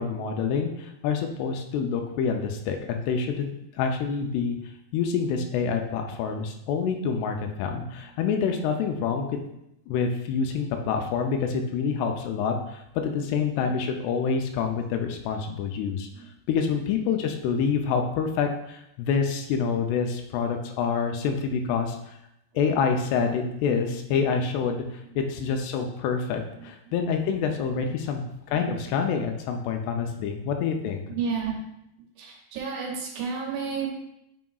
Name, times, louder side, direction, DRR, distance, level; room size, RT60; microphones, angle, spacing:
voice 1, 0.0-3.5 3.8-4.6 4.9-9.3 9.9-16.1 16.5-22.2 22.6-28.2 28.5-31.0, left 6 dB, 80° left, 4 dB, 2.6 m, -27 dB
voice 2, 23.1-23.8 24.1-24.2 25.0-25.2 25.5-25.6 26.6-27.3 27.8-27.9 28.2-29.1 30.0-30.3 31.1-31.6 32.2-33.9, right 5 dB, 80° right, -1 dB, 3.1 m, -35 dB
9.4 x 5.1 x 2.3 m, 0.82 s
omnidirectional pair, 4.9 m